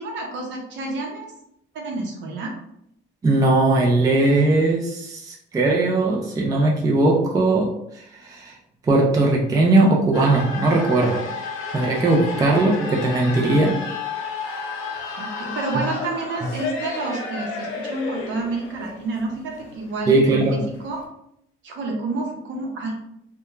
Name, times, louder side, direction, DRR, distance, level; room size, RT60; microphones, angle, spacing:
voice 1, 0.0-1.3 1.7-2.5 12.1-12.5 15.2-21.0 21.6-22.9, right 3 dB, 65° right, 0 dB, 0.7 m, -29 dB
voice 2, 3.2-7.7 7.9-8.5 8.9-11.2 11.7-13.8 20.1-20.6, right 2 dB, 15° right, -1 dB, 0.4 m, -19 dB
sound 1, 10.1-21.0, left 4 dB, 75° left, 0.7 m, -32 dB
2.3 x 2.2 x 3.0 m, 0.76 s
cardioid pair, 140°, 21 cm